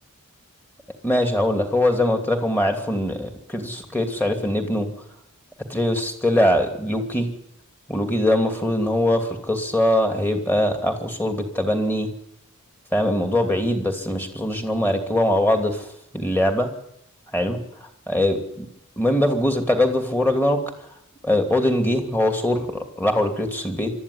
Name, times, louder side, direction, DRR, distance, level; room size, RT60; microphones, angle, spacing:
voice 1, 1.0-4.9 5.7-7.3 7.9-12.1 12.9-15.8 16.1-16.7 17.3-17.6 18.1-18.6 19.0-20.6 21.2-23.9, left 1 dB, 10° left, 5 dB, 2.7 m, -22 dB
24.5 x 13.0 x 9.9 m, 0.79 s
head